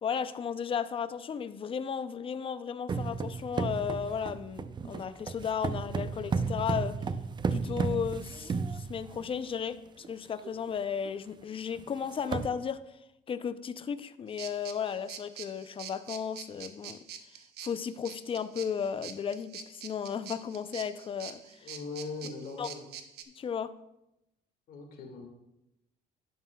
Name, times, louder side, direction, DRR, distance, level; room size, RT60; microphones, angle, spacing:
voice 1, 0.0-7.0 7.5-12.8 13.3-17.0 17.6-21.7 22.6-22.7 23.4-23.7, left 7 dB, 30° left, 13 dB, 0.5 m, -34 dB
sound 1, 2.9-9.4 10.0-10.1 10.4-10.7 11.0-11.1 11.8-11.9 12.1-12.5, right 5 dB, 25° right, 0.5 m, -33 dB
sound 2, 14.4-23.2, right 9 dB, 70° right, 0.9 m, -45 dB
voice 2, 21.6-22.9 24.7-25.3, left 4 dB, 60° left, 3 dB, 1.9 m, -40 dB
11.0 x 10.0 x 2.3 m, 0.89 s
cardioid pair, 110°, 17 cm